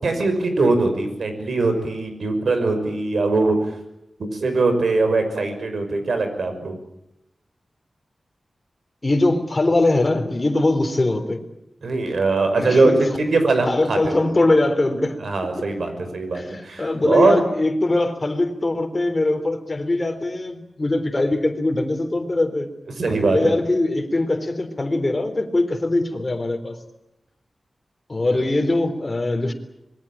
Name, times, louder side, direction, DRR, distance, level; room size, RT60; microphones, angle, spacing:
voice 1, 0.0-3.7 4.3-6.8 11.8-14.2 15.2-17.4 23.0-23.5 28.3-28.5, right 3 dB, 70° right, 7 dB, 5.9 m, -21 dB
voice 2, 9.0-11.4 12.6-13.0 13.7-15.2 16.3-22.7 23.2-26.8 28.1-29.5, left 2 dB, 25° left, 5 dB, 3.8 m, -21 dB
26.0 x 22.0 x 8.8 m, 0.86 s
wide cardioid pair, 125°, 0 cm